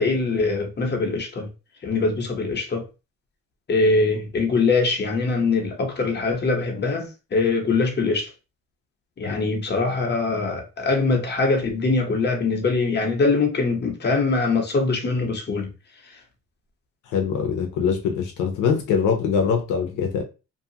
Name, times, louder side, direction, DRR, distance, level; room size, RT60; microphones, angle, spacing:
voice 1, 0.0-1.5 1.8-2.8 3.7-8.3 9.2-15.7, left 3 dB, 35° left, 1.0 m, -22 dB
voice 2, 17.1-20.2, left 6 dB, 85° left, 0.7 m, -23 dB
2.7 x 2.3 x 2.8 m
cardioid pair, 90°, 30 cm